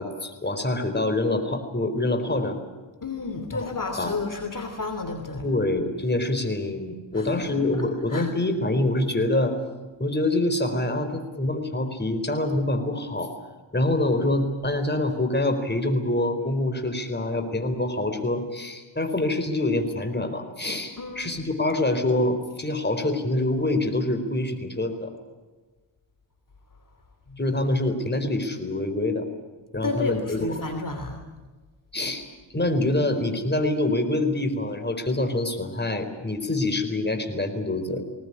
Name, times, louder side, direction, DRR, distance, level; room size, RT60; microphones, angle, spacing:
voice 1, 0.0-2.6 3.5-3.7 4.0-4.2 5.4-9.5 10.0-13.3 13.7-25.1 27.4-29.3 29.7-30.4 31.9-32.2 32.5-38.0, left 2 dB, 25° left, 7 dB, 4.3 m, -25 dB
voice 2, 3.0-5.5 7.1-8.3 21.0-21.3 27.3-27.4 29.7-31.2, left 3 dB, 45° left, 5 dB, 3.1 m, -31 dB
20.5 x 18.5 x 9.9 m, 1.3 s
cardioid pair, 60°, 45 cm